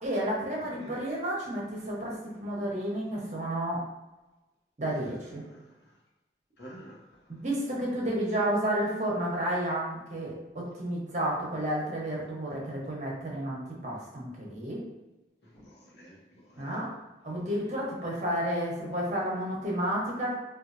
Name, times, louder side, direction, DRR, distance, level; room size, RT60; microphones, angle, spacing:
voice 1, 0.0-3.8 4.8-5.4 7.3-14.8 16.6-16.9 17.2-20.3, right 1 dB, 40° right, -4 dB, 0.8 m, -31 dB
voice 2, 0.6-1.0 4.9-5.1 5.4-5.9 6.6-7.0 15.4-16.9 17.3-17.7, equal, 65° left, -3 dB, 0.9 m, -50 dB
4.3 x 2.3 x 2.5 m, 1.1 s
head